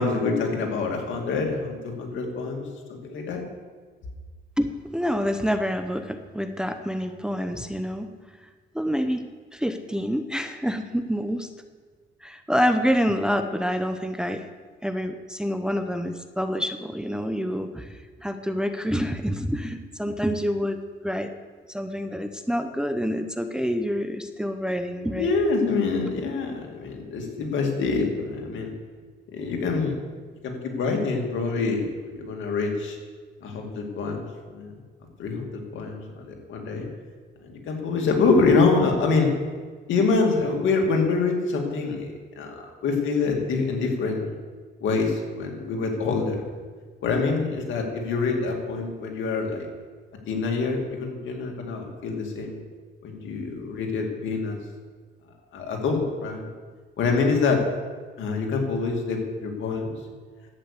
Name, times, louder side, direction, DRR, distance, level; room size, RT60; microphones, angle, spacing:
voice 1, 0.0-3.4 25.2-28.7 29.3-30.0 30.4-33.0 33.4-34.2 34.5-34.7 35.2-36.9 37.4-39.3 39.9-44.3 44.8-46.5 47.0-49.7 50.3-52.6 53.0-54.6 55.5-56.5 57.0-57.6 58.2-59.9, left 4 dB, 75° left, 1 dB, 2.4 m, -25 dB
voice 2, 4.6-8.1 8.7-9.2 9.5-11.5 12.2-14.5 14.8-21.3 21.7-25.3, equal, 5° right, 7 dB, 0.8 m, -27 dB
11.5 x 8.6 x 6.7 m, 1.5 s
cardioid pair, 90°, 20 cm